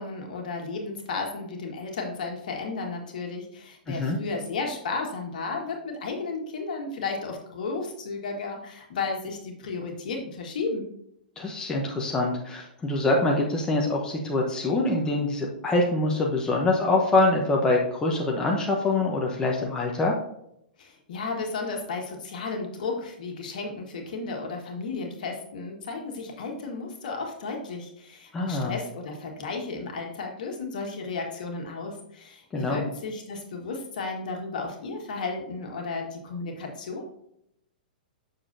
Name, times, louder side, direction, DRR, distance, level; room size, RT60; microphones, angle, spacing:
voice 1, 0.0-10.9 20.8-37.0, left 4 dB, 60° left, 2 dB, 1.7 m, -33 dB
voice 2, 3.9-4.2 11.4-20.1 28.3-28.8 32.5-32.8, left 2 dB, 15° left, -1 dB, 1.0 m, -25 dB
7.4 x 6.5 x 2.7 m, 0.77 s
figure-of-eight pair, 110°, 5 cm